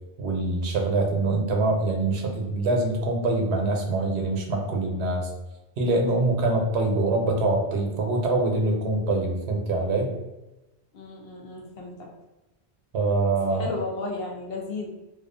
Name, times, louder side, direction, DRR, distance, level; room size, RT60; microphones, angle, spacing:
voice 1, 0.2-5.3 5.8-10.1 12.9-13.7, right 2 dB, 90° right, 1 dB, 0.9 m, -24 dB
voice 2, 10.9-12.1 13.5-14.9, left 3 dB, 70° left, 0 dB, 0.7 m, -34 dB
2.3 x 2.3 x 2.5 m, 1.0 s
omnidirectional pair, 1.1 m